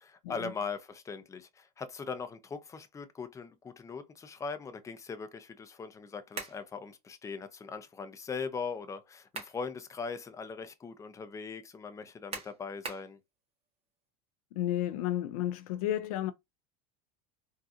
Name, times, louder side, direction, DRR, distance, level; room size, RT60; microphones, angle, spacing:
voice 1, 0.0-13.2, left 5 dB, 15° left, 0.5 m, -40 dB
sound 1, 6.3-6.6 9.0-9.6 10.1-10.2 12.3-13.1, right 4 dB, 30° right, 1.5 m, -41 dB
voice 2, 14.5-16.3, left 12 dB, 75° left, 0.4 m, -32 dB
3.7 x 2.3 x 2.7 m
supercardioid pair, 105°, 19 cm